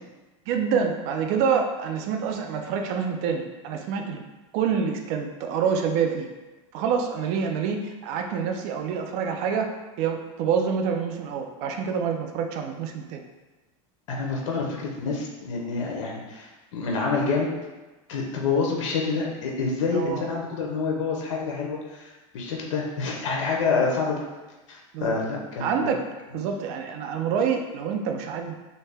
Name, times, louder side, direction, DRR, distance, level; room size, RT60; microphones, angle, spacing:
voice 1, 0.5-4.2 4.5-6.3 6.7-13.2 19.9-20.3 24.9-25.2 25.6-26.0 26.3-28.6, right 6 dB, 45° right, 4 dB, 0.4 m, -27 dB
voice 2, 14.1-17.5 18.1-24.2 24.7-25.7, left 4 dB, 70° left, -1 dB, 0.7 m, -27 dB
2.7 x 2.1 x 3.3 m, 1.2 s
supercardioid pair, 145°, 16 cm